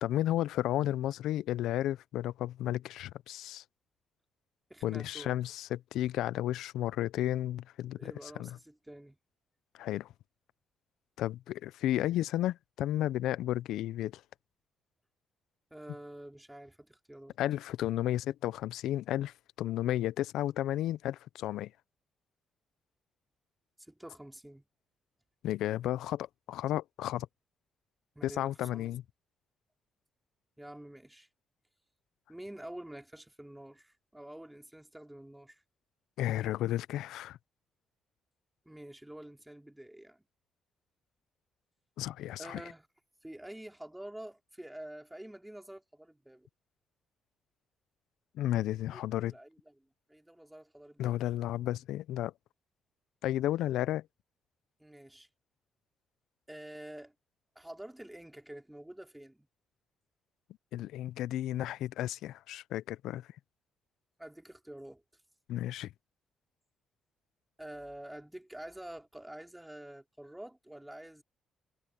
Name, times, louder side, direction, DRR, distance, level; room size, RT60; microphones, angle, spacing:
voice 1, 0.0-3.6 4.8-8.6 9.7-10.1 11.2-14.2 17.4-21.7 25.4-27.3 28.2-29.0 36.2-37.4 42.0-42.6 48.3-49.3 51.0-52.3 53.2-54.1 60.7-63.3 65.5-65.9, left 13 dB, 85° left, 0.4 m, -33 dB
voice 2, 4.7-5.4 7.9-9.2 15.7-17.4 23.8-24.6 28.2-29.0 30.6-31.3 32.3-35.6 38.7-40.2 42.4-42.9 43.2-46.5 48.9-49.0 49.3-51.2 54.8-55.3 56.5-57.1 57.6-59.5 64.2-65.0 67.6-71.2, right 1 dB, 5° right, 3.7 m, -48 dB
cardioid pair, 90°, 0 cm